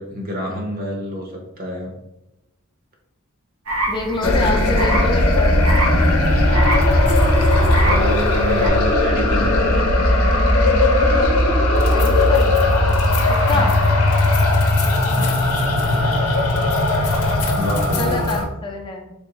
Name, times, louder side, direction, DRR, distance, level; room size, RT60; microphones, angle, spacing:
voice 1, 0.0-1.9 4.4-4.6 7.8-9.7 13.5-13.8 15.1-15.5 17.5-18.4, equal, 40° right, 0 dB, 0.8 m, -27 dB
sound 1, 3.7-8.7, right 1 dB, 85° right, 1.1 m, -26 dB
voice 2, 3.9-5.6 11.9-12.6 13.3-13.7 17.8-19.1, left 2 dB, 20° left, 0 dB, 0.5 m, -26 dB
sound 2, 4.2-18.5, left 1 dB, 90° left, 0.6 m, -17 dB
3.5 x 3.2 x 3.0 m, 0.92 s
head